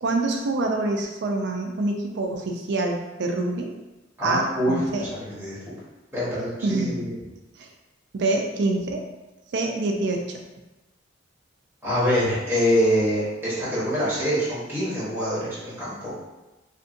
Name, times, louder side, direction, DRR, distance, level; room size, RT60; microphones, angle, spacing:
voice 1, 0.0-3.7 4.2-5.1 6.6-7.1 7.6-7.7 8.1-9.0 9.5-10.4, right 2 dB, 60° right, 2 dB, 0.4 m, -26 dB
voice 2, 4.2-5.6 6.1-7.1 11.8-16.1, equal, 10° right, -11 dB, 1.0 m, -25 dB
2.6 x 2.5 x 2.5 m, 1.1 s
head